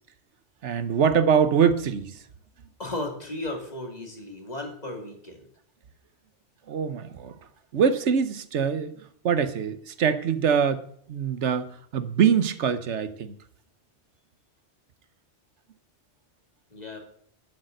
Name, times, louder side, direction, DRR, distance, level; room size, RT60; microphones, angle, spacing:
voice 1, 0.6-2.2 6.7-7.3 7.7-9.0 9.2-10.8 11.1-13.3, right 7 dB, 80° right, 1.2 m, -23 dB
voice 2, 2.8-5.5 16.7-17.0, left 2 dB, 35° left, 2.7 m, -35 dB
11.5 x 6.7 x 7.7 m
omnidirectional pair, 1.2 m